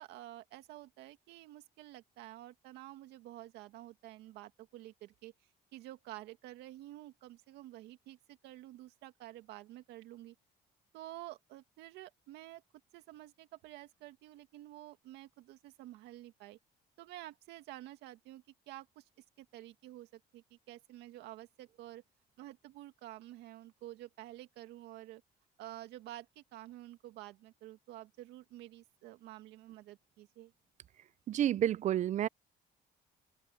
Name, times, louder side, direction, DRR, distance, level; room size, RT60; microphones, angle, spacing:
voice 1, 0.0-5.3 5.7-10.3 10.9-12.6 12.9-16.6 17.0-19.0 19.4-22.0 22.4-25.2 25.6-30.5, right 15 dB, 90° right, 2.2 m, -50 dB
voice 2, 31.3-32.3, right 11 dB, 45° right, 0.4 m, -30 dB
open air
cardioid pair, 110°, 17 cm